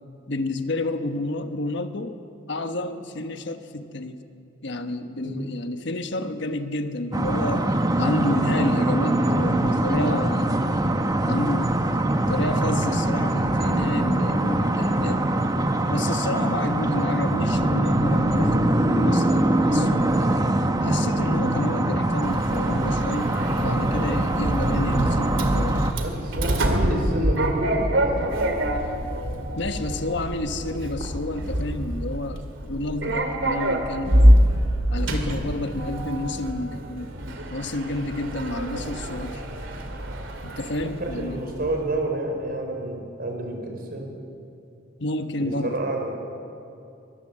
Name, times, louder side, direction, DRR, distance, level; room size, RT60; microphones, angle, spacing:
voice 1, 0.3-2.2 2.5-4.2 4.6-10.6 11.2-11.7 12.3-15.2 15.9-20.5 20.8-25.9 29.6-34.4 34.9-37.1 37.5-39.4 40.4-41.4 45.0-45.7, left 1 dB, 65° left, 7 dB, 1.3 m, -30 dB
sound 1, 7.1-25.9, right 1 dB, 20° right, 1.1 m, -23 dB
Sliding door, 22.2-41.8, equal, 75° right, 2.8 m, -25 dB
voice 2, 26.0-28.3 35.9-36.0 40.8-44.1 45.4-46.1, right 1 dB, 50° right, 2 dB, 5.0 m, -29 dB
22.5 x 22.5 x 7.6 m, 2.6 s
head